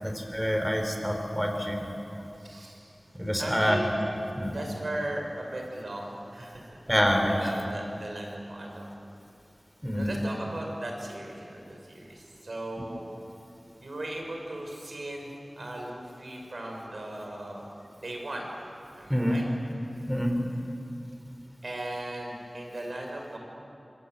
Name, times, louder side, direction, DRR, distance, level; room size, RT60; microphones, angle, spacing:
voice 1, 0.0-1.8 3.2-3.8 4.3-4.6 6.9-7.4 9.8-10.1 19.1-19.4 20.1-20.3, equal, ahead, 3 dB, 5.3 m, -26 dB
voice 2, 2.4-3.0 3.4-3.8 4.5-6.7 7.3-8.9 9.9-13.1 13.8-17.6 18.0-18.5 19.0-19.4 19.9-20.0 21.6-23.4, right 1 dB, 70° right, 1 dB, 6.2 m, -37 dB
26.5 x 24.0 x 9.2 m, 2.7 s
wide cardioid pair, 45°, 0 cm